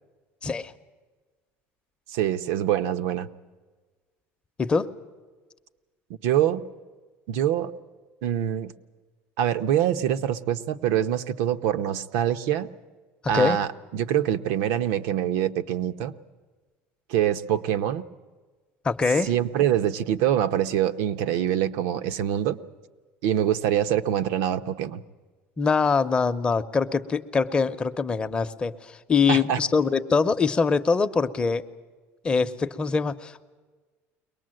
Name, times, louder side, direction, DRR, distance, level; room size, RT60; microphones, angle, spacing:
voice 1, 0.4-0.7 4.6-4.9 13.3-13.6 18.8-19.3 25.6-31.7 32.2-33.4, left 5 dB, 20° left, 9 dB, 0.7 m, -23 dB
voice 2, 2.1-3.3 6.2-6.7 7.3-7.7 8.2-8.7 9.4-12.7 13.3-16.1 17.1-18.0 19.3-22.6 23.2-25.0 29.3-29.6, right 10 dB, 85° right, 10 dB, 0.9 m, -24 dB
23.0 x 19.5 x 7.7 m, 1.4 s
cardioid pair, 155°, 6 cm